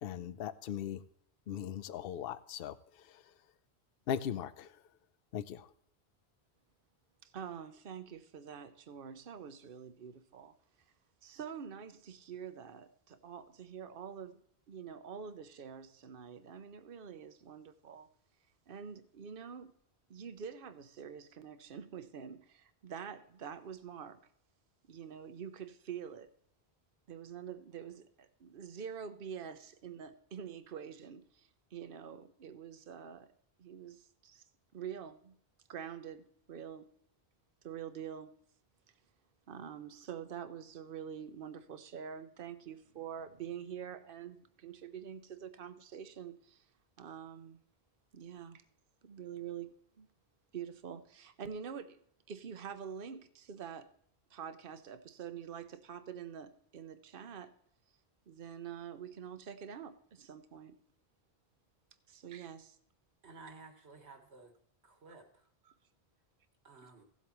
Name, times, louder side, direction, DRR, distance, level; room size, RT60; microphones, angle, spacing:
voice 1, 0.0-1.0 1.5-2.7 4.1-4.7 5.3-5.7, left 9 dB, 65° left, 0.8 m, -38 dB
voice 2, 7.2-10.5 11.2-14.4 14.7-18.1 18.7-19.7 20.1-24.2 24.9-26.3 27.1-33.3 33.6-34.4 34.7-35.3 35.7-36.9 37.6-38.3 39.5-46.7 47.0-47.6 48.1-48.6 49.0-50.1 50.5-52.0 52.3-53.9 54.3-57.5 58.3-60.8 62.1-62.8 65.7-65.8 66.8-66.9, right 8 dB, 60° right, 1.0 m, -46 dB
voice 3, 63.2-64.5 64.8-65.4 66.6-67.0, right 3 dB, 85° right, 2.0 m, -54 dB
16.5 x 8.2 x 3.1 m
omnidirectional pair, 1.1 m